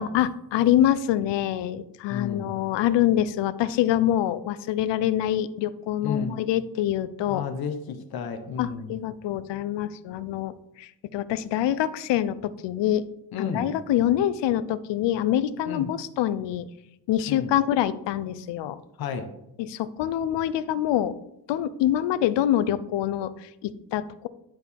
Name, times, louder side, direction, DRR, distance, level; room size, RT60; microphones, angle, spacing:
voice 1, 0.0-7.4 8.6-13.0 13.4-16.7 17.1-18.8 19.6-21.1 21.5-24.3, left 11 dB, 80° left, 15 dB, 0.5 m, -25 dB
voice 2, 2.1-2.6 6.0-6.4 7.2-8.9 13.3-13.7 15.6-15.9 17.3-17.5 19.0-19.3, left 6 dB, 60° left, 7 dB, 0.9 m, -32 dB
10.5 x 4.6 x 3.5 m, 0.83 s
cardioid pair, 155°, 42 cm